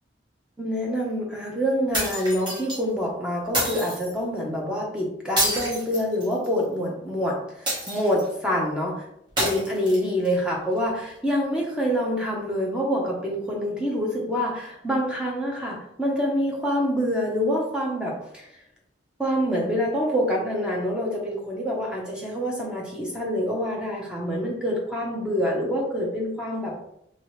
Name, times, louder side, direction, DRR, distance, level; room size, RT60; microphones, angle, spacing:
voice 1, 0.6-9.1 9.4-18.5 19.2-26.7, equal, 5° right, -3 dB, 0.7 m, -26 dB
sound 1, 1.9-2.8 3.5-4.1 5.4-6.6 7.7-8.3 9.4-10.3, equal, 25° right, 1.2 m, -27 dB
2.9 x 2.8 x 3.1 m, 0.74 s
head